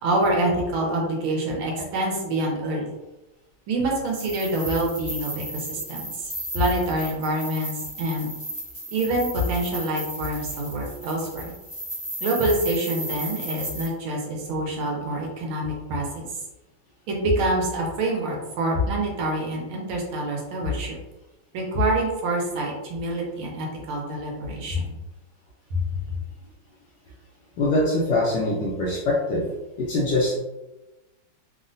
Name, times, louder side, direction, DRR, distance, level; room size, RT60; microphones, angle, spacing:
voice 1, 0.0-2.9 3.7-8.3 8.9-11.5 12.2-16.3 17.1-20.9 21.5-24.9 25.7-25.8, right 1 dB, 80° right, -1 dB, 1.5 m, -26 dB
sound 1, 4.1-13.9, right 1 dB, 15° left, 0.6 m, -35 dB
voice 2, 27.6-29.4 29.8-30.4, left 2 dB, 75° left, -5 dB, 1.0 m, -23 dB
3.7 x 2.1 x 2.5 m, 1.0 s
omnidirectional pair, 2.4 m